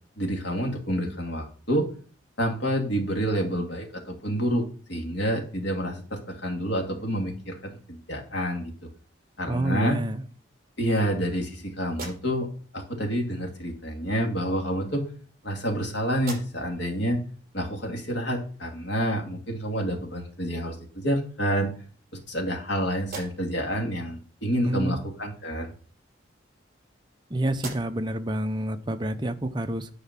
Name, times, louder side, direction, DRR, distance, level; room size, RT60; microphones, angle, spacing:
voice 1, 0.2-1.9 2.4-4.6 4.9-8.7 9.4-10.0 10.8-12.5 12.7-15.0 15.4-17.2 17.5-21.7 22.3-25.7, equal, 65° left, 1 dB, 2.3 m, -28 dB
voice 2, 9.5-10.3 24.7-25.1 27.3-29.9, right 1 dB, 25° right, 7 dB, 0.7 m, -28 dB
sound 1, 11.8-12.7 13.8-14.0 14.9-15.8 16.1-16.9 17.4-17.5 20.1-20.2 20.7-21.3 21.9-22.7 23.0-23.7 25.7-27.2 27.5-28.2, right 3 dB, 50° right, 5.5 m, -43 dB
10.5 x 4.9 x 5.9 m, 0.43 s
head